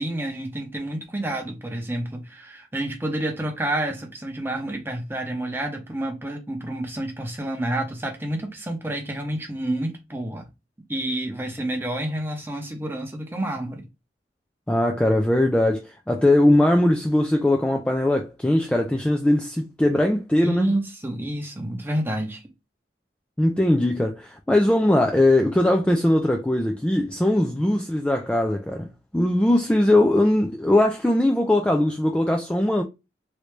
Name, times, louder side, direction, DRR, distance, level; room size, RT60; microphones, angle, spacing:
voice 1, 0.0-10.5 10.9-13.8 20.4-22.4 30.7-30.8, right 1 dB, 10° right, 0.7 m, -29 dB
voice 2, 14.7-20.7 23.4-28.9 29.1-32.8, left 1 dB, 5° left, 0.3 m, -20 dB
3.2 x 2.6 x 3.1 m
head